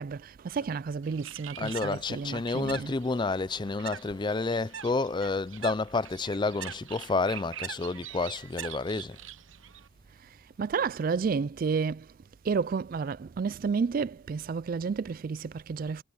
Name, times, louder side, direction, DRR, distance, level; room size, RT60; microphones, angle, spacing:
voice 1, 0.0-3.0 10.2-10.3 10.6-12.1 12.4-16.0, right 5 dB, 45° right, 0.3 m, -31 dB
Bird, 1.0-9.9, right 9 dB, 90° right, 0.9 m, -44 dB
voice 2, 1.6-9.2, left 3 dB, 25° left, 0.4 m, -30 dB
head